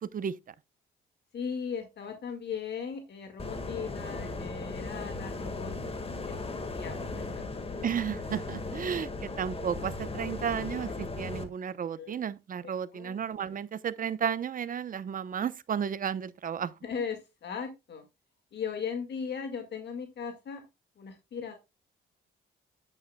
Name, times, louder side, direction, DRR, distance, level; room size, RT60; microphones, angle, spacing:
voice 1, 0.0-0.5 7.8-16.7, right 8 dB, 45° right, 0.8 m, -33 dB
voice 2, 1.3-5.8 6.2-7.4 12.0-12.1 12.6-13.2 16.8-18.1 18.5-20.7 21.0-21.6, left 6 dB, 60° left, 1.9 m, -38 dB
sound 1, 3.4-11.4, left 3 dB, 30° left, 1.7 m, -37 dB
9.1 x 8.7 x 2.2 m
cardioid pair, 90°, 20 cm